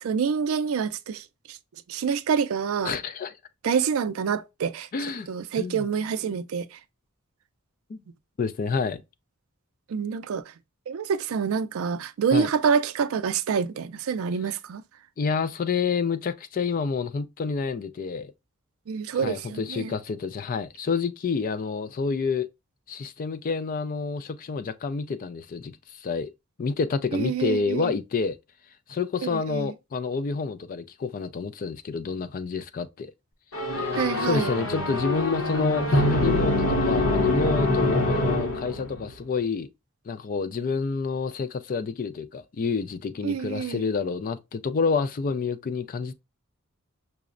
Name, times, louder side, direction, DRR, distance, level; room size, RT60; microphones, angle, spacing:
voice 1, 0.0-1.6 1.9-3.0 3.6-4.9 5.3-6.8 9.9-10.5 10.9-14.8 18.9-19.9 27.1-27.9 29.2-29.7 33.9-34.5 43.2-43.8, right 6 dB, 75° right, 0.4 m, -27 dB
voice 2, 2.8-3.3 4.9-5.3 5.6-5.8 7.9-8.0 8.4-9.0 12.3-12.5 15.2-18.3 19.2-22.5 22.9-26.3 26.6-28.4 28.9-33.1 33.8-39.7 40.1-46.1, left 5 dB, 40° left, 0.3 m, -28 dB
sound 1, 33.5-39.1, left 2 dB, 75° left, 0.9 m, -24 dB
5.6 x 2.1 x 2.4 m
head